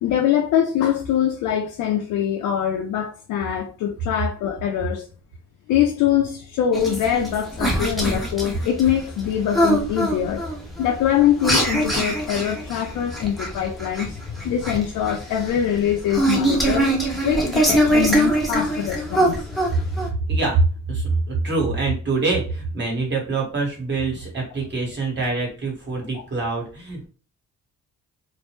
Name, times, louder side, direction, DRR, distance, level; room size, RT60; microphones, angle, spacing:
voice 1, 0.0-5.1 5.7-10.4 10.8-16.9 17.2-19.5, left 10 dB, 85° left, 1 dB, 0.5 m, -23 dB
sound 1, 6.7-20.1, right 1 dB, ahead, 0.8 m, -23 dB
voice 2, 20.3-20.6 20.9-27.1, right 3 dB, 35° right, -1 dB, 1.3 m, -24 dB
2.5 x 2.1 x 3.0 m, 0.37 s
cardioid pair, 90°, 30 cm